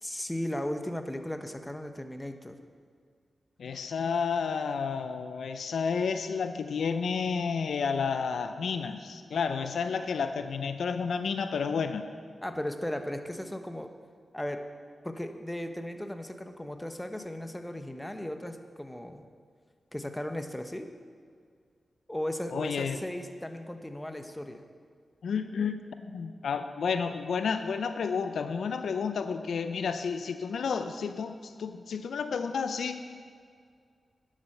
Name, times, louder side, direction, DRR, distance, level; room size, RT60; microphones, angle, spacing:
voice 1, 0.0-2.6 12.4-13.9 14.3-14.6 15.0-19.2 19.9-20.9 22.1-24.6, left 1 dB, 10° left, 7 dB, 1.0 m, -36 dB
voice 2, 3.6-12.1 22.5-23.0 25.2-33.0, left 5 dB, 85° left, 9 dB, 0.5 m, -31 dB
10.5 x 7.5 x 6.7 m, 2.1 s
cardioid pair, 50°, 0 cm